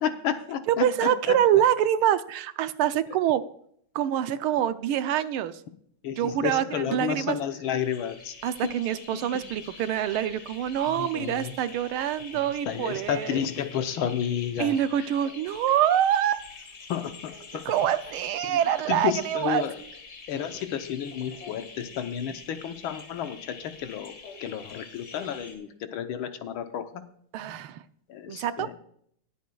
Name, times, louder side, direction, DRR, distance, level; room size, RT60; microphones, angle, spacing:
voice 1, 0.0-1.4 6.0-8.3 9.1-9.4 10.9-11.5 12.6-15.1 16.9-17.6 18.4-18.6 18.9-19.8 20.3-24.1 24.4-27.0 28.1-28.7, left 9 dB, 75° left, 8 dB, 1.6 m, -31 dB
voice 2, 0.7-3.4 3.9-5.6 6.2-7.4 8.4-13.4 14.6-16.4 17.7-19.6 27.3-27.8 28.3-28.7, right 10 dB, 80° right, 12 dB, 1.5 m, -25 dB
sound 1, 7.7-25.6, left 4 dB, 50° left, 2.3 m, -46 dB
20.0 x 8.4 x 2.3 m, 0.65 s
omnidirectional pair, 2.4 m